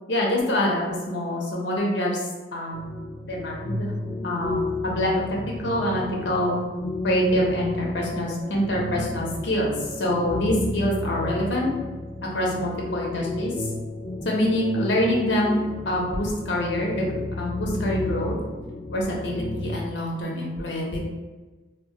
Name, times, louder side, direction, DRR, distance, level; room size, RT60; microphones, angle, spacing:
voice 1, 0.1-2.2 2.5-2.9 3.2-3.9 4.2-6.6 7.0-11.7 12.3-13.7 14.2-15.6 15.8-18.4 18.9-21.0, equal, 65° left, -2 dB, 0.7 m, -25 dB
sound 1, 2.7-19.9, left 2 dB, 30° left, 0.3 m, -32 dB
2.2 x 2.1 x 3.7 m, 1.2 s
head